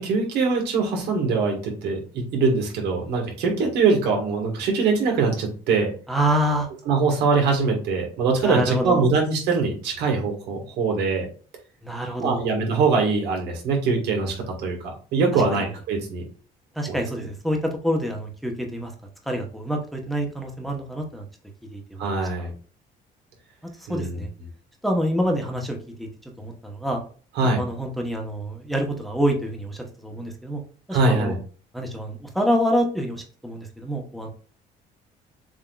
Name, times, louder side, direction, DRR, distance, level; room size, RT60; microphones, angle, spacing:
voice 1, 0.0-5.9 6.9-11.3 12.2-14.3 14.6-16.2 16.9-17.0 22.0-22.5 23.9-24.2 27.4-27.6 30.9-31.4, right 4 dB, 85° right, 1 dB, 1.6 m, -23 dB
voice 2, 6.1-6.7 8.4-9.1 11.8-12.5 15.3-15.7 16.7-18.9 19.3-21.3 21.7-22.5 23.8-24.3 24.8-27.0 27.6-30.6 30.9-31.3 31.7-34.3, equal, ahead, 2 dB, 0.9 m, -27 dB
7.1 x 2.8 x 2.3 m, 0.40 s
cardioid pair, 110°, 17 cm